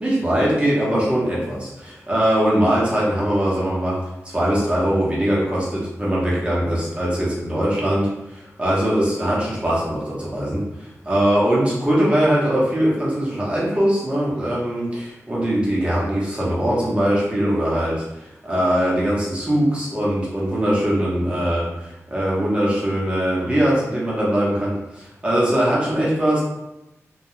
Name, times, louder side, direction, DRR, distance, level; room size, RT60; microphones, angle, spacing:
voice 1, 0.0-4.0 4.2-26.4, right 1 dB, 20° right, -6 dB, 0.9 m, -21 dB
2.3 x 2.2 x 3.0 m, 0.91 s
wide cardioid pair, 95°, 6 cm